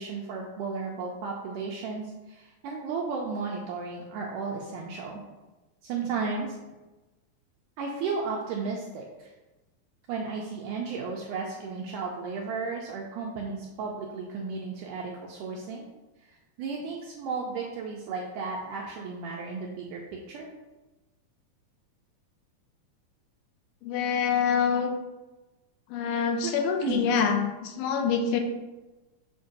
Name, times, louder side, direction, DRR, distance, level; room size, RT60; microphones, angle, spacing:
voice 1, 0.0-5.2 5.8-6.6 7.8-9.3 10.1-15.9 16.3-20.5 26.4-26.5 26.8-27.0, right 4 dB, 85° right, -1 dB, 1.8 m, -34 dB
voice 2, 23.8-25.0 25.9-28.4, left 6 dB, 90° left, 5 dB, 2.5 m, -26 dB
7.1 x 2.6 x 5.2 m, 1.1 s
omnidirectional pair, 4.3 m